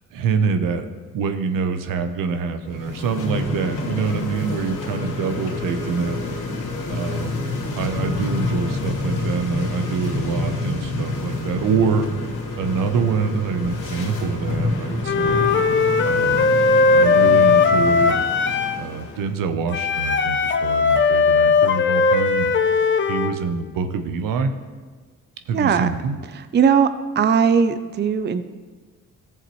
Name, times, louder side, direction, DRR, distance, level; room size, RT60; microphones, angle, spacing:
voice 1, 0.1-0.8 1.1-6.2 6.9-7.4 7.8-12.1 12.6-15.5 16.0-16.5 16.9-18.2 18.8-22.5 23.1-24.5 25.5-26.2, right 5 dB, 80° right, 8 dB, 0.9 m, -25 dB
sound 1, 2.6-19.3, left 2 dB, 70° left, 2.9 m, -28 dB
Wind instrument woodwind instrument, 15.0-18.9 19.7-23.4, left 4 dB, 35° left, 0.7 m, -18 dB
voice 2, 25.5-25.9 26.5-26.9 27.2-28.4, right 7 dB, 35° right, 11 dB, 0.5 m, -18 dB
14.0 x 7.3 x 3.1 m, 1.4 s
supercardioid pair, 65°, 33 cm